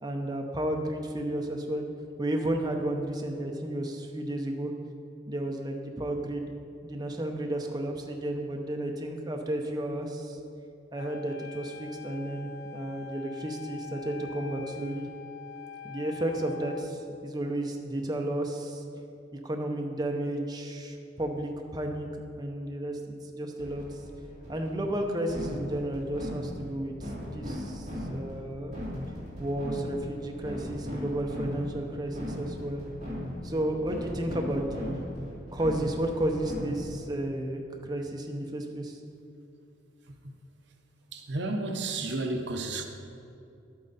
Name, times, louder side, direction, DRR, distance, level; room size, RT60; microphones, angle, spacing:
voice 1, 0.0-1.9 2.2-4.7 5.3-6.5 6.8-10.4 10.9-15.1 15.8-18.8 19.4-22.1 22.4-23.0 23.3-24.0 24.5-28.8 29.4-32.8 33.4-35.0 35.5-39.0, right 1 dB, 20° right, 0.7 m, -32 dB
Wind instrument woodwind instrument, 10.9-16.9, left 7 dB, 60° left, 0.6 m, -44 dB
sound 1, 23.6-37.1, left 1 dB, 40° right, 2.7 m, -38 dB
voice 2, 40.0-40.4 41.1-42.8, right 2 dB, 60° right, 0.8 m, -32 dB
11.5 x 8.6 x 4.1 m
head